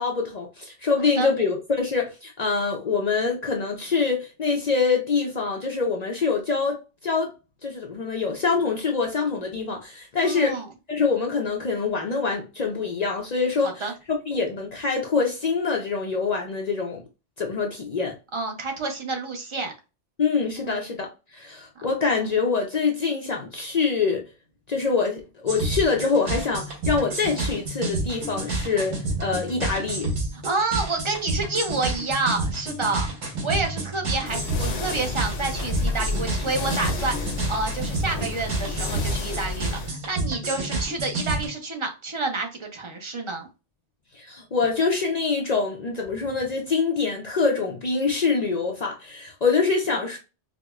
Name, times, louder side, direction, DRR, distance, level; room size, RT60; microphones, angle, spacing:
voice 1, 0.0-7.3 7.6-10.6 10.9-13.8 14.1-17.0 17.4-18.2 20.2-24.2 24.7-30.1 44.1-50.2, left 4 dB, 55° left, 0.5 m, -25 dB
voice 2, 10.2-10.7 13.6-13.9 18.3-19.7 20.6-20.8 21.8-21.9 30.3-43.5, right 3 dB, 35° right, 0.5 m, -29 dB
sound 1, 25.5-41.5, right 2 dB, 80° right, 1.5 m, -30 dB
sound 2, 34.3-39.9, left 3 dB, 70° left, 0.9 m, -31 dB
4.8 x 2.0 x 2.3 m
omnidirectional pair, 1.2 m